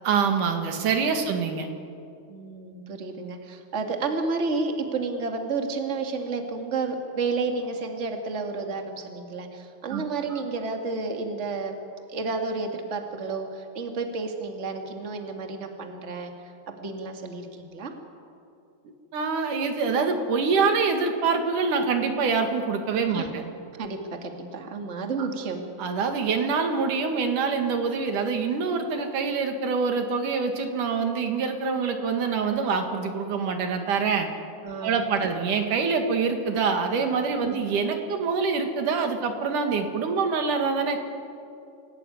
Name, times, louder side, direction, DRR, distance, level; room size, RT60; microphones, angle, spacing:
voice 1, 0.0-1.7 9.9-10.0 10.3-10.4 19.1-23.4 25.2-25.3 25.8-34.3 34.8-41.0, right 5 dB, 85° right, 5 dB, 3.5 m, -25 dB
voice 2, 2.3-11.8 12.1-16.3 16.8-17.9 23.1-23.3 23.7-25.6 34.6-35.3 37.4-37.6, right 4 dB, 25° right, 3 dB, 2.1 m, -31 dB
26.5 x 17.0 x 9.4 m, 2.6 s
omnidirectional pair, 3.6 m